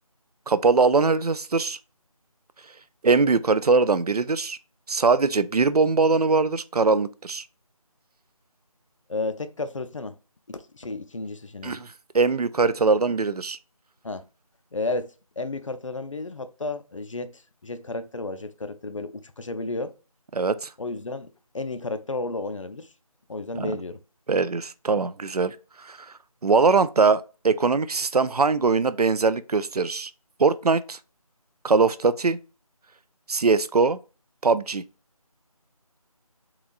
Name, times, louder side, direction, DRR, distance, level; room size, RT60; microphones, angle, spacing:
voice 1, 0.5-1.8 3.0-4.6 4.9-7.4 11.6-13.6 20.3-20.7 23.6-23.8 24.3-26.1 26.4-30.1 30.4-31.0 31.6-32.4 33.3-34.0 34.4-34.8, right 4 dB, 80° right, 0.4 m, -22 dB
voice 2, 9.1-10.1 10.5-11.8 14.0-14.3 14.7-15.1 15.4-19.9 20.8-21.3 21.5-22.9 23.3-24.0, left 3 dB, 55° left, 0.4 m, -32 dB
3.8 x 2.9 x 2.3 m
figure-of-eight pair, 160°, 19 cm